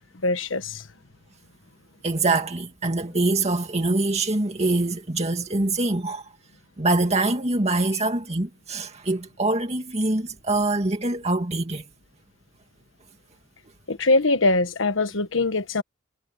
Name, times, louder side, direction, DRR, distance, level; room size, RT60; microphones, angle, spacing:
voice 1, 0.2-0.8 13.9-15.8, left 2 dB, 85° left, 1.4 m, -22 dB
voice 2, 2.0-6.3 6.8-11.8, right 2 dB, 35° right, 2.0 m, -24 dB
head